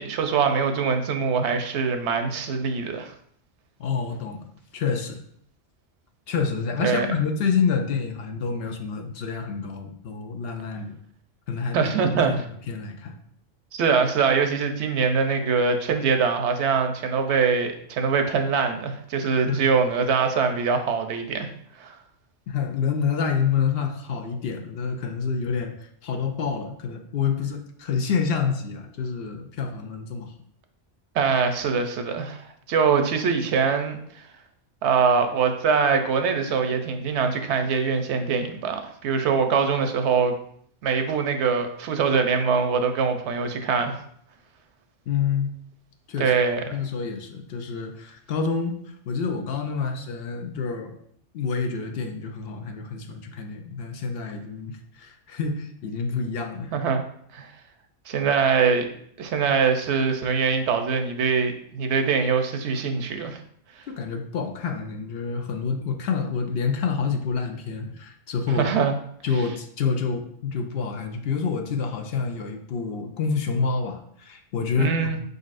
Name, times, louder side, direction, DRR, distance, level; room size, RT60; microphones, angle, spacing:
voice 1, 0.0-3.1 6.8-7.1 11.7-12.3 13.7-21.5 21.8-22.0 31.1-34.0 34.8-40.3 40.8-44.0 46.2-46.6 56.7-57.0 57.3-57.5 58.1-58.9 59.2-63.4 68.5-68.9 69.3-69.4 74.8-75.2, right 5 dB, 80° right, 6 dB, 0.9 m, -23 dB
voice 2, 3.8-5.2 6.3-11.0 11.5-11.9 12.3-12.4 12.7-13.2 19.4-19.6 22.5-30.3 45.1-45.5 46.1-46.3 46.6-48.7 49.1-51.0 51.3-56.7 58.1-58.3 63.9-68.7 69.2-75.2, left 5 dB, 65° left, 5 dB, 0.7 m, -28 dB
5.0 x 4.0 x 2.5 m, 0.66 s
omnidirectional pair, 1.2 m